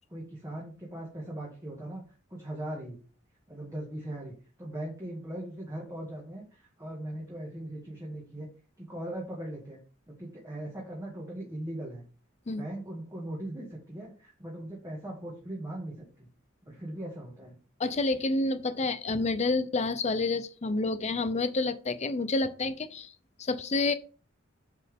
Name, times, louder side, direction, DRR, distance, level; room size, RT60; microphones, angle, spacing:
voice 1, 0.1-2.0 2.3-3.0 3.5-8.5 8.8-9.8 10.1-12.0 12.5-16.3 16.7-17.6, right 1 dB, 15° right, 1.7 m, -39 dB
voice 2, 17.8-23.1 23.4-23.9, left 3 dB, 35° left, 0.6 m, -29 dB
8.2 x 4.5 x 3.6 m
head